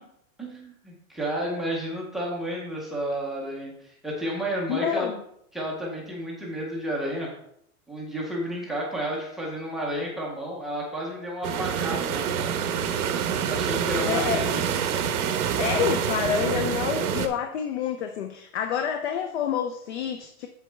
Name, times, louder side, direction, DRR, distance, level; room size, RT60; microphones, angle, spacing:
voice 1, 0.4-5.1 5.5-7.3 7.9-12.5 13.5-14.6, equal, ahead, -4 dB, 0.5 m, -31 dB
voice 2, 4.7-5.2 14.1-14.6 15.6-20.5, left 8 dB, 50° left, 6 dB, 0.6 m, -28 dB
sound 1, 11.4-17.3, right 8 dB, 75° right, 1.1 m, -26 dB
8.0 x 7.2 x 3.3 m, 0.72 s
supercardioid pair, 170°, 46 cm